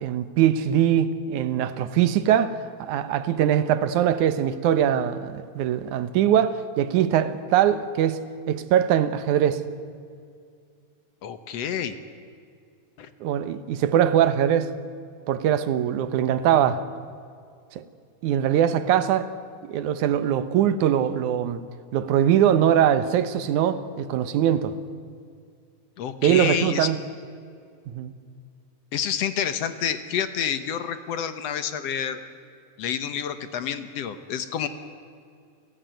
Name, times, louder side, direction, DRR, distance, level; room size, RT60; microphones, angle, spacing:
voice 1, 0.0-8.2 8.5-9.6 13.2-14.7 15.3-16.9 17.7-17.8 18.2-19.3 19.6-21.6 21.9-24.8 26.2-27.0 27.9-28.1, right 10 dB, 90° right, 2.5 m, -22 dB
voice 2, 11.2-12.0 13.0-13.1 26.0-26.9 28.9-32.2 32.8-34.7, left 8 dB, 65° left, 2.0 m, -28 dB
28.5 x 17.0 x 9.1 m
omnidirectional pair, 3.4 m